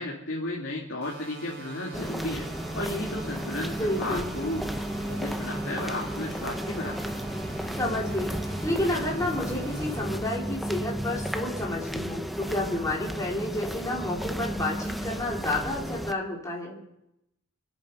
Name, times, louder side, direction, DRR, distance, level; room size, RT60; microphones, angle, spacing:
voice 1, 0.0-2.5 2.7-4.7 5.1-7.1, left 1 dB, 65° left, -4 dB, 2.6 m, -34 dB
sound 1, 1.0-10.0, right 3 dB, 55° right, 6.5 m, -42 dB
sound 2, 1.9-16.1, equal, ahead, 0.7 m, -33 dB
voice 2, 3.8-4.3 7.8-16.8, left 1 dB, 15° left, -4 dB, 4.0 m, -30 dB
26.0 x 9.1 x 5.5 m, 0.84 s
head